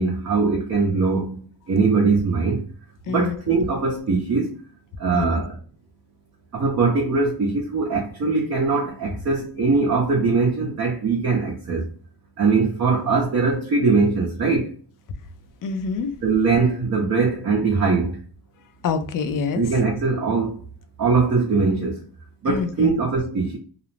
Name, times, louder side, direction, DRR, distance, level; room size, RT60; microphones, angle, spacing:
voice 1, 0.0-2.7 3.0-4.6 5.0-5.6 6.5-11.9 12.4-14.7 16.2-18.2 19.5-20.6 21.0-22.0 22.4-23.6, right 4 dB, 35° right, 0.6 m, -21 dB
voice 2, 15.6-16.1 18.8-19.7 22.5-22.9, left 5 dB, 45° left, 0.4 m, -26 dB
2.4 x 2.0 x 3.1 m
cardioid pair, 110°, 46 cm